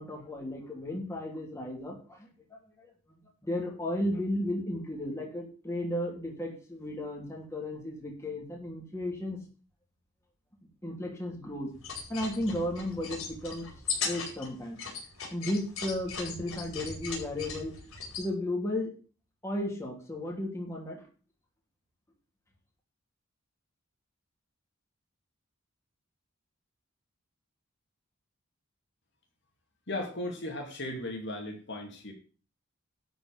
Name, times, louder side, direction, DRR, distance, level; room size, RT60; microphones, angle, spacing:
voice 1, 0.0-9.4 10.8-11.7 12.1-13.7 14.0-14.8 15.3-17.8 18.2-18.9 19.4-21.1, left 1 dB, 15° left, 0 dB, 3.0 m, -34 dB
sound 1, 11.7-18.3, left 5 dB, 75° left, 4.7 m, -38 dB
voice 2, 29.9-32.1, left 1 dB, 55° left, 2 dB, 2.4 m, -36 dB
12.0 x 5.2 x 7.6 m, 0.37 s
head